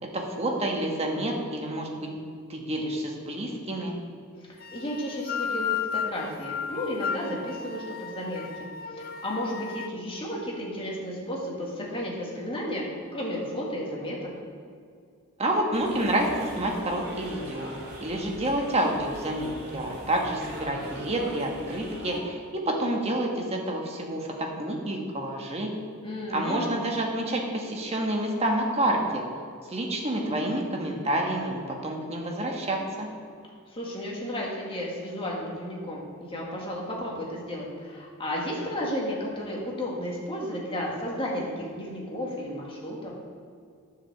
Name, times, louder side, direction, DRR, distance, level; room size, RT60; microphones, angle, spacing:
voice 1, 0.0-2.2 2.5-4.0 15.4-17.7 18.0-25.7 26.3-29.2 29.7-33.1, right 1 dB, 30° right, 0 dB, 1.3 m, -28 dB
voice 2, 4.5-12.8 13.1-14.3 26.0-26.7 33.7-43.1, equal, 25° left, -3 dB, 1.9 m, -33 dB
sound 1, 4.6-9.9, left 7 dB, 45° left, 0.5 m, -34 dB
sound 2, 15.7-22.2, equal, 50° right, 2.2 m, -40 dB
9.9 x 5.0 x 7.2 m, 2.2 s
head